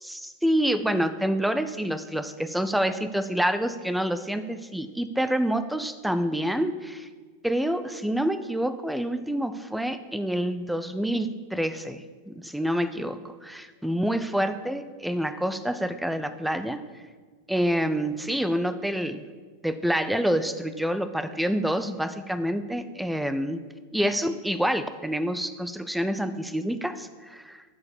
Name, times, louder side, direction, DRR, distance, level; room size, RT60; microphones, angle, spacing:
voice 1, 0.1-7.1 7.4-16.8 17.5-19.2 19.6-23.6 23.9-27.6, equal, ahead, 11 dB, 0.6 m, -27 dB
12.5 x 4.9 x 8.3 m, 1.5 s
figure-of-eight pair, 90°, 0 cm